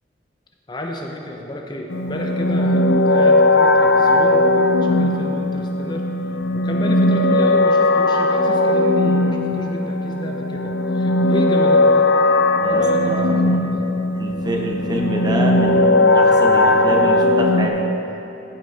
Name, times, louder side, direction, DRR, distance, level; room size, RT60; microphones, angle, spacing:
voice 1, 0.7-6.1 6.5-12.1 12.7-13.8, left 1 dB, 25° left, 1 dB, 0.6 m, -31 dB
sound 1, 1.9-17.7, left 2 dB, 75° left, 0.5 m, -17 dB
voice 2, 12.6-13.6 14.2-17.7, right 1 dB, 25° right, 1 dB, 0.9 m, -26 dB
14.5 x 6.2 x 4.1 m, 3.0 s
head